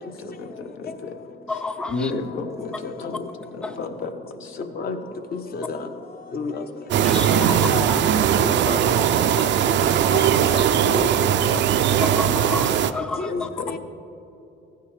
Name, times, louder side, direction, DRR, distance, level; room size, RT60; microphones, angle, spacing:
voice 1, 0.2-1.2 1.5-1.6 1.9-3.9 4.4-4.6, left 3 dB, 80° left, 0.9 m, -32 dB
voice 2, 1.5-1.9 7.0-7.6 7.9-8.0 9.4-9.5 12.0-13.3, left 3 dB, 5° left, 0.4 m, -30 dB
voice 3, 3.8-4.1 4.8-5.0 5.3-5.9 6.3-6.6 7.4-7.5 7.7-9.2 9.6-11.6 13.2-13.8, left 4 dB, 50° left, 0.8 m, -31 dB
sound 1, 6.9-12.9, right 9 dB, 65° right, 0.4 m, -19 dB
14.5 x 9.3 x 3.2 m
cardioid pair, 90°, 20 cm